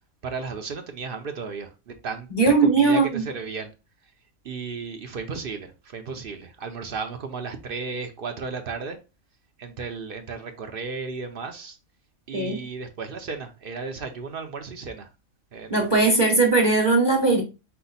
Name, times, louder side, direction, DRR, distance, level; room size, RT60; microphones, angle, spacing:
voice 1, 0.2-2.3 2.6-3.7 4.4-9.0 9.6-11.8 12.3-15.1 15.5-15.9, right 4 dB, 55° right, 0.6 m, -34 dB
voice 2, 2.3-3.2 12.3-12.6 15.7-17.4, right 3 dB, 20° right, 1.2 m, -19 dB
5.5 x 2.1 x 3.9 m
omnidirectional pair, 1.4 m